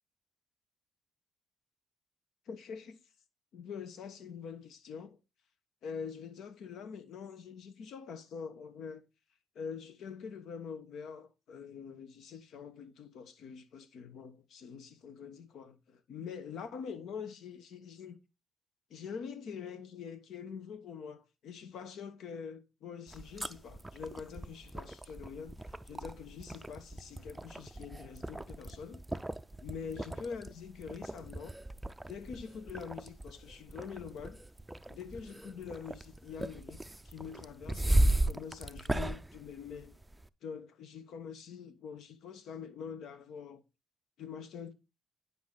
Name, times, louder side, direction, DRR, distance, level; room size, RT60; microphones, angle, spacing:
voice 1, 2.5-3.0 3.5-5.2 5.8-9.0 9.5-18.2 18.9-29.0 29.6-31.5 32.1-34.4 34.9-36.8 37.0-39.9 40.4-43.6 44.2-44.7, left 6 dB, 75° left, 1.2 m, -45 dB
sound 1, 23.1-40.3, right 1 dB, 10° right, 0.4 m, -36 dB
9.5 x 5.6 x 3.9 m
cardioid pair, 90°, 0 cm